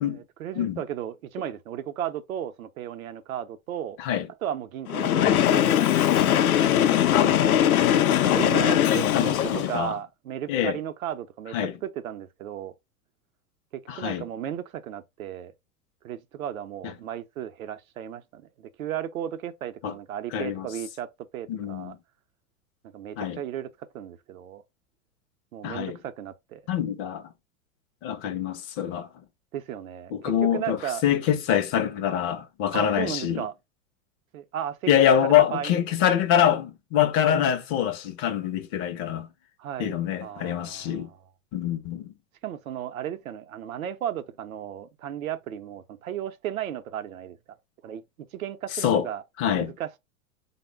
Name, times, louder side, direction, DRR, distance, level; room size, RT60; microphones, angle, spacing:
voice 1, 0.0-4.0 4.4-5.7 7.8-11.6 11.8-12.7 13.7-15.5 16.0-21.1 21.3-22.0 22.9-24.6 25.5-26.6 29.5-31.0 32.7-33.5 34.3-35.8 37.2-37.4 39.6-41.2 42.4-47.4 47.8-48.0 48.3-49.2 49.5-50.0, right 10 dB, 75° right, 0.6 m, -35 dB
Train, 4.9-9.9, left 11 dB, 80° left, 0.5 m, -21 dB
voice 2, 7.1-7.6 9.1-10.0 10.5-10.8 11.5-11.7 13.9-14.2 19.8-19.9 20.3-20.7 21.5-22.0 23.2-23.4 25.6-26.0 26.7-27.2 28.0-29.1 30.1-33.5 34.9-39.3 39.8-41.1 41.5-42.1 48.8-49.1 49.4-49.7, left 10 dB, 35° left, 0.5 m, -25 dB
3.5 x 2.1 x 3.2 m
hypercardioid pair, 95°, 42 cm